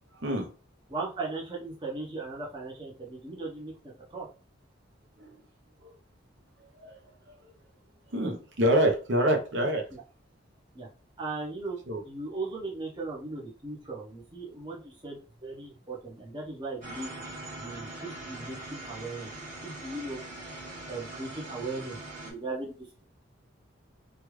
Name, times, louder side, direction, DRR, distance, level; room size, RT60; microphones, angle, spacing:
voice 1, 0.1-0.5 5.2-5.3 5.8-5.9 6.8-7.0 8.1-9.8 11.9-12.0, equal, 65° right, 0.8 m, -26 dB
voice 2, 0.9-4.3 9.9-10.0 10.7-10.9 11.2-17.1 17.6-19.3 19.6-20.2 20.9-23.0, right 3 dB, 25° right, 0.8 m, -38 dB
sound 1, 16.8-22.3, right 2 dB, 40° right, 1.2 m, -42 dB
3.2 x 2.3 x 3.1 m
head